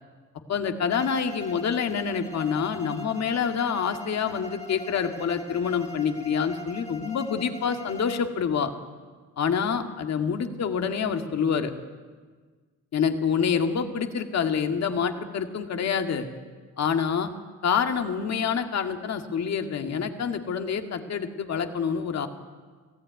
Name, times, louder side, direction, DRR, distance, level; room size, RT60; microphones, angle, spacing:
voice 1, 0.5-8.7 9.4-11.7 12.9-16.3 16.8-17.3 17.6-22.3, left 6 dB, 60° left, 5 dB, 2.1 m, -27 dB
Bowed string instrument, 0.9-8.4, left 3 dB, 25° left, 3.0 m, -41 dB
24.5 x 16.5 x 9.5 m, 1.5 s
cardioid pair, 90°, 30 cm